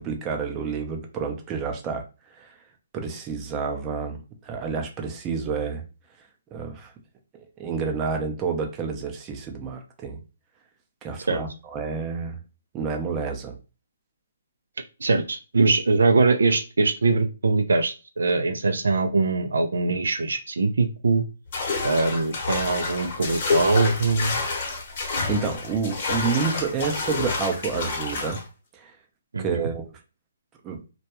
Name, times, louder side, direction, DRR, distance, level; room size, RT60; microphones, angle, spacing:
voice 1, 0.0-2.0 2.4-2.5 2.9-5.8 6.5-6.9 7.3-10.2 11.0-12.4 12.7-13.6 25.0-28.4 28.7-28.9 29.4-29.9 30.6-30.8, right 5 dB, 20° right, 3 dB, 0.5 m, -29 dB
voice 2, 15.0-21.2 21.8-24.4 29.3-29.7, right 3 dB, 80° right, 7 dB, 0.4 m, -22 dB
sound 1, 21.5-28.4, left 4 dB, 45° left, 0.9 m, -28 dB
2.2 x 2.1 x 2.9 m, 0.32 s
hypercardioid pair, 145°, 0 cm